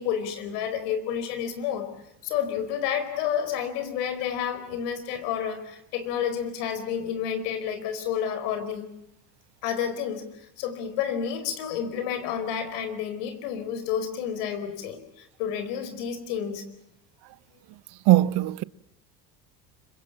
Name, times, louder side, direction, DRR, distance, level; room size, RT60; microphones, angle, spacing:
voice 1, 0.0-1.9 2.2-8.9 9.6-16.7, left 8 dB, 75° left, 4.8 m, -30 dB
voice 2, 18.1-18.6, right 16 dB, 55° right, 1.0 m, -19 dB
26.0 x 24.5 x 7.4 m
hypercardioid pair, 85°, 47 cm